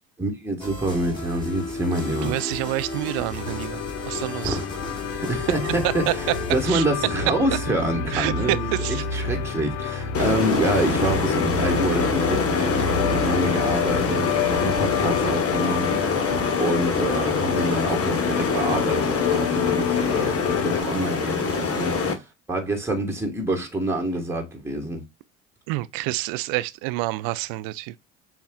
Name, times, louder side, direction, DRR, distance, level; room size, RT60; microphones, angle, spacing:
voice 1, 0.2-2.3 4.4-4.6 5.0-25.0, right 1 dB, 5° right, 1.4 m, -27 dB
sound 1, 0.6-6.6, left 2 dB, 15° left, 2.0 m, -34 dB
sound 2, 1.2-20.8, left 7 dB, 70° left, 0.9 m, -29 dB
voice 2, 2.0-4.6 5.8-6.1 6.6-6.8 8.1-9.0 25.7-27.9, right 19 dB, 65° right, 0.5 m, -28 dB
sound 3, 10.1-22.1, left 4 dB, 35° left, 1.2 m, -25 dB
7.0 x 2.4 x 2.3 m
hypercardioid pair, 65°, 38 cm